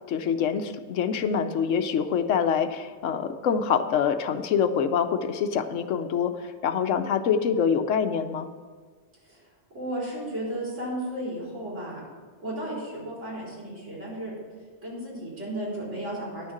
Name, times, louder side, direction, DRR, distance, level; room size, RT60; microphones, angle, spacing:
voice 1, 0.1-8.5, left 7 dB, 80° left, 9 dB, 1.0 m, -25 dB
voice 2, 9.7-12.0 12.4-14.3 14.8-16.5, right 1 dB, 70° right, -6 dB, 4.5 m, -34 dB
10.5 x 6.4 x 7.2 m, 1.5 s
omnidirectional pair, 1.3 m